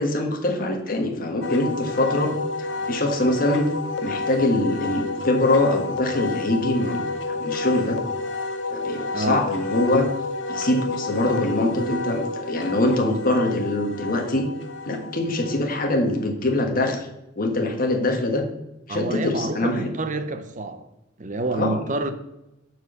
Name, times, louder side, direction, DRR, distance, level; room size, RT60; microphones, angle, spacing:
voice 1, 0.0-2.3 2.6-3.7 4.0-8.0 8.7-10.1 10.5-14.5 14.8-17.1 17.4-18.5 18.9-19.9 21.6-21.8, left 1 dB, 45° left, 1.4 m, -23 dB
Wind instrument woodwind instrument, 1.4-16.1, left 3 dB, 70° left, 0.8 m, -30 dB
voice 2, 18.9-20.9 21.2-22.1, right 2 dB, 40° right, 0.7 m, -28 dB
8.3 x 4.6 x 6.7 m
head